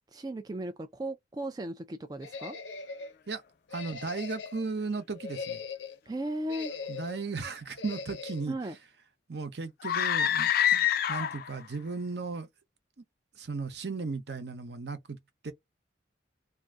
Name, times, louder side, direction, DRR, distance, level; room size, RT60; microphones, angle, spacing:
voice 1, 0.1-2.6 6.1-6.7 8.5-8.8, right 1 dB, 20° right, 0.3 m, -36 dB
sound 1, 2.2-3.1 3.7-4.7 5.1-6.0 6.5-7.2 7.8-8.5, left 5 dB, 85° left, 0.8 m, -40 dB
voice 2, 3.7-5.6 6.9-8.5 9.3-12.5 13.4-15.2 15.4-15.5, right 4 dB, 65° right, 0.8 m, -36 dB
sound 2, 9.8-11.6, left 10 dB, 55° left, 0.3 m, -26 dB
2.5 x 2.5 x 3.4 m
head